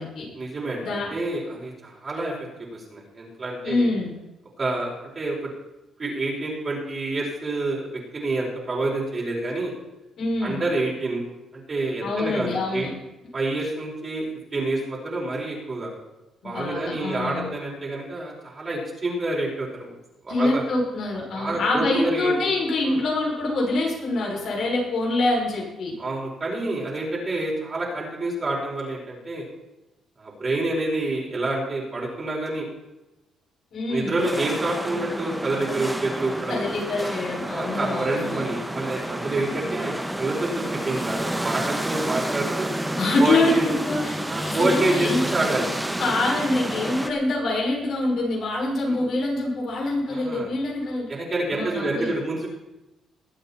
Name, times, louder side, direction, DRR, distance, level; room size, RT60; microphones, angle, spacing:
voice 1, 0.3-2.3 2.7-3.9 4.6-5.5 6.0-9.7 10.4-11.2 11.5-12.9 13.3-14.3 14.5-15.9 16.4-19.9 20.2-20.6 21.3-22.4 22.8-23.0 26.0-29.4 30.2-32.6 33.9-36.6 37.4-42.7 43.2-43.6 44.3-45.7 48.9-49.0 50.1-50.5 51.1-52.5, right 2 dB, 35° right, -4 dB, 5.0 m, -28 dB
voice 2, 3.6-4.1 10.2-10.6 12.0-12.9 16.4-17.5 20.3-25.9 33.7-34.2 36.5-38.4 43.0-44.2 44.4-45.2 46.0-51.1 51.5-52.1, left 2 dB, 65° left, -2 dB, 6.1 m, -25 dB
sound 1, 34.2-47.1, right 1 dB, 5° right, 1.4 m, -30 dB
21.5 x 8.2 x 4.4 m, 0.97 s
cardioid pair, 90°, 0 cm